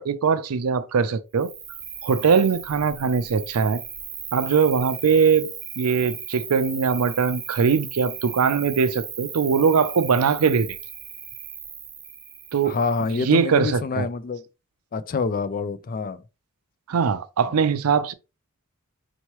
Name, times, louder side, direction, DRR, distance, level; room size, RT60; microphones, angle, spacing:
voice 1, 0.0-1.5 2.0-3.8 4.3-10.8 12.5-12.8 13.2-14.1 16.9-18.1, right 6 dB, 75° right, 0.5 m, -21 dB
Cricket, 1.4-13.3, right 8 dB, 25° right, 0.6 m, -37 dB
voice 2, 12.6-14.4 14.9-16.2, left 4 dB, 40° left, 0.4 m, -26 dB
4.4 x 3.0 x 3.0 m
head